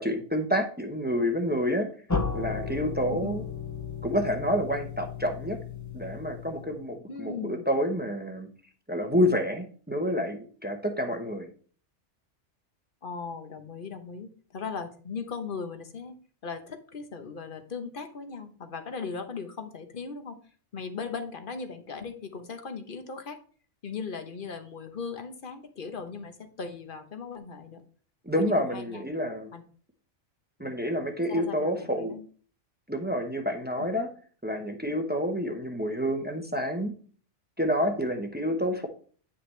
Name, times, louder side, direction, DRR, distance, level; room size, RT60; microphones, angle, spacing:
voice 1, 0.0-1.9 2.3-3.4 4.0-5.6 5.9-8.5 8.9-11.5 28.3-29.5 30.6-32.2 32.9-34.1 34.4-36.9 37.6-38.9, equal, 10° right, 4 dB, 0.8 m, -28 dB
sound 1, 2.1-6.9, left 5 dB, 20° left, 0.6 m, -34 dB
voice 2, 3.1-3.4 7.1-7.7 13.0-16.1 16.4-20.4 20.7-23.4 23.8-27.8 28.3-29.0 29.5-29.6 30.6-30.8 31.3-32.2, left 5 dB, 45° left, 7 dB, 1.1 m, -38 dB
9.4 x 5.8 x 3.3 m, 0.43 s
omnidirectional pair, 1.3 m